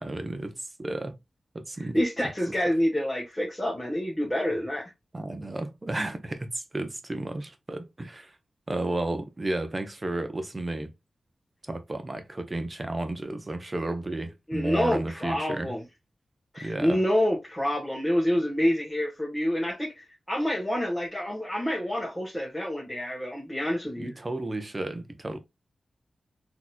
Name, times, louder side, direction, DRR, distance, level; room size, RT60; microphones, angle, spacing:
voice 1, 0.0-1.2 1.5-2.0 5.1-8.4 8.7-10.9 11.7-15.7 16.6-17.0 24.0-25.4, right 2 dB, 30° right, 0.7 m, -33 dB
voice 2, 1.8-4.9 14.5-15.8 16.5-24.1, equal, 10° left, 1.4 m, -27 dB
3.9 x 2.9 x 2.3 m
cardioid pair, 60°, 0 cm